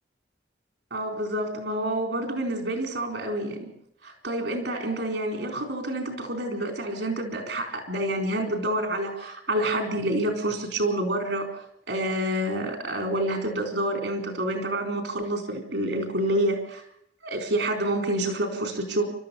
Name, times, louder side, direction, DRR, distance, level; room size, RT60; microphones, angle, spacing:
voice 1, 0.9-3.7 4.0-11.5 11.9-16.8 17.2-19.1, right 1 dB, 70° right, 4 dB, 4.3 m, -28 dB
28.5 x 13.0 x 7.0 m, 0.71 s
head